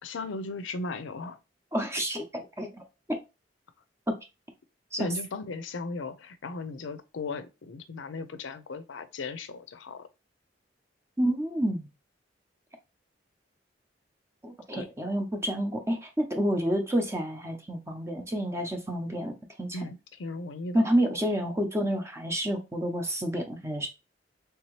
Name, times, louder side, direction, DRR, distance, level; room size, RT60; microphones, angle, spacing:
voice 1, 0.0-1.4 5.0-10.1 14.7-14.9 19.7-20.8, left 3 dB, 85° left, 0.5 m, -37 dB
voice 2, 1.7-2.7 3.1-3.2 4.9-5.1 11.2-11.9 14.4-19.3 19.6-19.8 20.7-23.9, equal, 15° right, 0.7 m, -29 dB
3.4 x 2.9 x 3.1 m
head